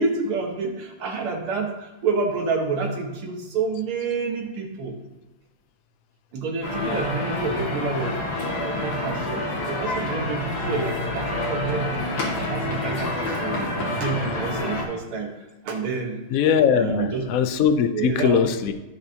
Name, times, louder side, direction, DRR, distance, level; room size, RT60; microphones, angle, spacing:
voice 1, 0.0-5.0 6.3-8.2 8.5-13.6 14.0-15.3 15.6-16.2 16.7-17.2 17.9-18.4, right 4 dB, 90° right, 1 dB, 2.3 m, -28 dB
sound 1, 6.6-14.8, left 2 dB, 50° left, 2.6 m, -28 dB
voice 2, 16.3-18.7, left 7 dB, 75° left, 8 dB, 0.8 m, -20 dB
15.0 x 6.5 x 2.9 m, 1.1 s
omnidirectional pair, 2.3 m